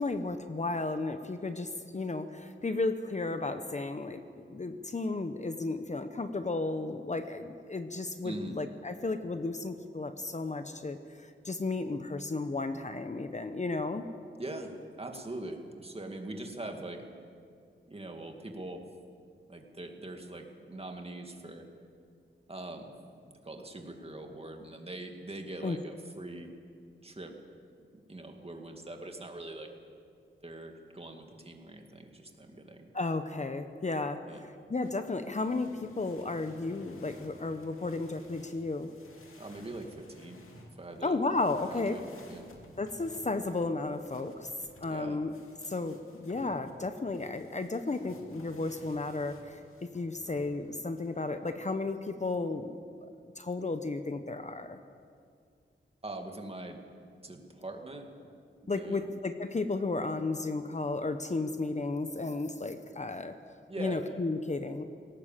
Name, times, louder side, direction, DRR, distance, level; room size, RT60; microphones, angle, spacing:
voice 1, 0.0-14.0 25.6-25.8 32.9-38.9 41.0-42.0 42.8-44.5 44.8-45.3 45.6-52.7 53.2-54.8 58.7-63.3 63.8-64.8, left 3 dB, 35° left, 8 dB, 0.9 m, -33 dB
voice 2, 8.2-8.6 14.4-17.0 17.9-18.8 19.5-21.6 22.5-22.9 23.2-26.5 27.0-27.3 28.1-29.7 30.4-32.9 34.3-34.4 39.4-40.4 40.8-41.2 41.7-42.5 44.9-45.2 56.0-56.8 57.2-58.1 58.6-59.0 63.7-64.1, right 2 dB, 30° right, 3 dB, 2.3 m, -42 dB
sound 1, 34.8-51.2 51.9-52.6, left 1 dB, 90° left, 2.5 m, -56 dB
20.0 x 18.0 x 7.4 m, 2.3 s
wide cardioid pair, 100°, 21 cm